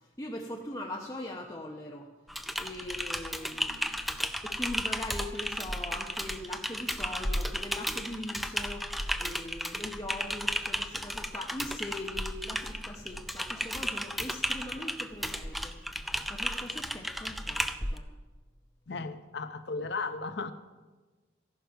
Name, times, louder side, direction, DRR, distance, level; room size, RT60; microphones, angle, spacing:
voice 1, 0.2-2.1 2.6-3.9 4.4-15.7 16.3-18.1, left 1 dB, 15° left, -2 dB, 0.8 m, -41 dB
Typing, 2.3-18.0, equal, ahead, 0.4 m, -34 dB
voice 2, 18.9-20.5, left 3 dB, 65° left, 10 dB, 0.7 m, -35 dB
14.5 x 11.5 x 4.6 m, 1.3 s
head